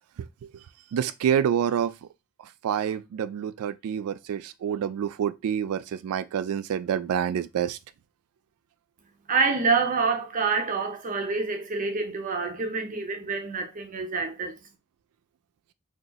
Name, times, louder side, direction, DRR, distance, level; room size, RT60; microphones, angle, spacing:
voice 1, 0.9-1.9 2.6-7.8, right 8 dB, 85° right, 0.3 m, -27 dB
voice 2, 9.3-14.6, right 4 dB, 35° right, 0.6 m, -27 dB
2.7 x 2.3 x 3.9 m
head